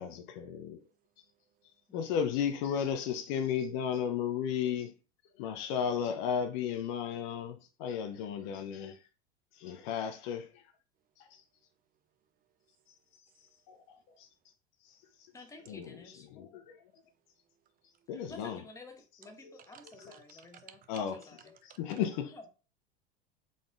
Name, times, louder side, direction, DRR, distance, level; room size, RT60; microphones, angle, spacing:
voice 1, 0.0-0.8 1.9-5.0 5.4-9.0 9.5-10.7 11.2-11.4 13.7-14.3 14.8-15.3 15.7-16.9 18.1-18.6 20.0-20.4 20.9-21.2 21.8-22.3, left 8 dB, 50° left, 0.5 m, -34 dB
voice 2, 0.8-1.7 9.8-9.9 11.0-11.1 11.4-11.5 12.2-13.6 14.0-14.1 17.0-18.1 19.7-21.0 21.7-22.0, right 10 dB, 25° right, 0.6 m, -61 dB
voice 3, 1.9-2.2 15.3-16.3 18.1-21.5 22.3-22.5, left 2 dB, 10° left, 0.9 m, -52 dB
3.8 x 3.6 x 2.4 m
figure-of-eight pair, 85°, 32 cm